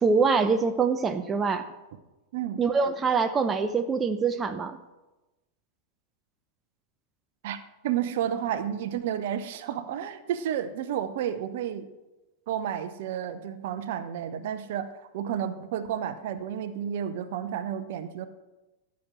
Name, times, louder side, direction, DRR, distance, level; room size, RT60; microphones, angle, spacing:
voice 1, 0.0-1.6 2.6-4.8, right 5 dB, 20° right, 8 dB, 0.7 m, -24 dB
voice 2, 7.4-11.9 12.5-14.9 15.1-18.3, right 9 dB, 55° right, 11 dB, 0.8 m, -31 dB
13.0 x 6.4 x 7.1 m, 1.1 s
figure-of-eight pair, 90°, 0 cm